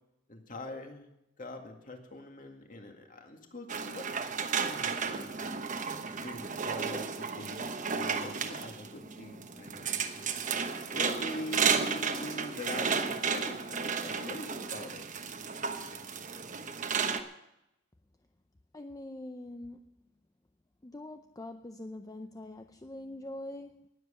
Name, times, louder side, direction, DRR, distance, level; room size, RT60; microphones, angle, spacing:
voice 1, 0.3-1.1 1.4-5.5 6.2-7.7 7.9-10.4 10.9-15.0, left 1 dB, 40° left, 4 dB, 2.1 m, -43 dB
sound 1, 3.7-17.2, right 5 dB, 40° right, 1.1 m, -33 dB
voice 2, 18.7-20.0 20.8-23.9, left 1 dB, 15° left, 7 dB, 0.5 m, -44 dB
19.0 x 7.6 x 6.9 m, 0.85 s
head